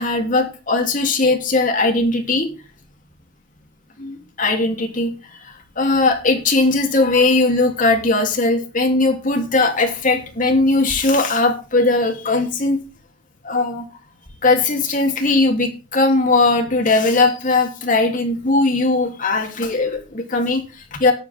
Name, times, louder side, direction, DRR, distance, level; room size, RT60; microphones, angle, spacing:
voice 1, 0.0-2.5 4.0-12.8 13.4-13.9 14.4-21.1, left 3 dB, 45° left, 3 dB, 3.2 m, -19 dB
13.5 x 11.0 x 3.7 m, 0.33 s
head